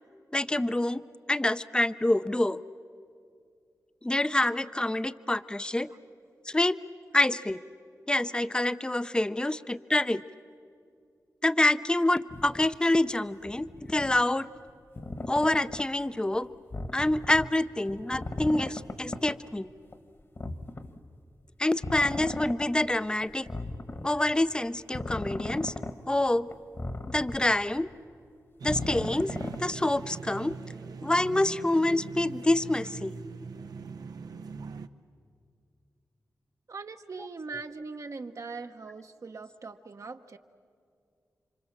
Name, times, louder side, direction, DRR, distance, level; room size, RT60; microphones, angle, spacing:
voice 1, 0.3-1.0 1.3-2.6 4.0-5.9 6.5-6.8 7.1-7.6 8.1-10.2 11.4-14.5 15.3-16.5 16.9-19.7 21.6-23.5 24.0-25.7 26.1-26.5 27.1-27.9 28.6-30.6 31.0-33.2, left 1 dB, 15° left, 14 dB, 0.6 m, -26 dB
sound 1, 12.3-12.8 13.5-14.2 15.0-15.9 16.7-17.5 17.9-19.4 19.9-20.0 20.4-21.0 21.8-22.7 23.2-24.1 24.9-25.9 26.5-27.6 28.7-29.6 30.5-30.6, left 2 dB, 40° left, 1.5 m, -36 dB
sound 2, 28.6-34.9, right 5 dB, 75° right, 0.8 m, -41 dB
voice 2, 36.7-40.4, right 4 dB, 55° right, 6 dB, 1.0 m, -41 dB
29.0 x 26.0 x 7.3 m, 2.3 s
cardioid pair, 60°, 7 cm